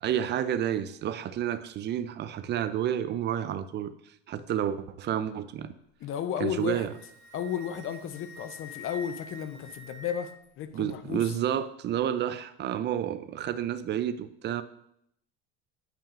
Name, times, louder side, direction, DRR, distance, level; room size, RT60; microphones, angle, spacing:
voice 1, 0.0-3.9 4.3-5.7 6.4-6.9 10.7-14.6, right 10 dB, 35° right, 13 dB, 0.4 m, -30 dB
voice 2, 6.0-6.9 7.3-11.3, left 9 dB, 40° left, 10 dB, 0.7 m, -33 dB
Wind instrument woodwind instrument, 6.5-10.5, equal, 70° left, 2.4 m, -47 dB
8.6 x 5.7 x 2.5 m, 0.73 s
supercardioid pair, 105°, 32 cm